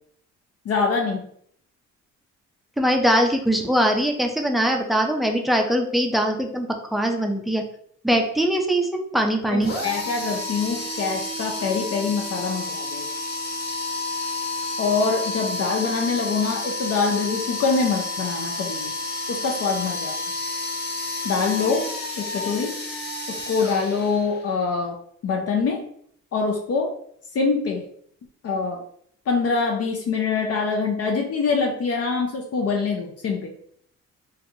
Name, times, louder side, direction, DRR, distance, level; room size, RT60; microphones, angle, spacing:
voice 1, 0.7-1.3 9.5-13.1 14.8-18.9 19.3-20.2 21.2-21.9 22.2-22.8 23.3-25.0 25.2-25.8 26.3-26.9 27.3-27.8 28.4-28.8 29.3-33.5, left 4 dB, 55° left, 2 dB, 0.5 m, -24 dB
voice 2, 2.8-7.6 8.0-9.7, equal, ahead, 3 dB, 0.4 m, -22 dB
sound 1, 9.6-24.5, left 2 dB, 35° left, 1.2 m, -30 dB
3.1 x 2.5 x 2.6 m, 0.66 s
cardioid pair, 90°, 30 cm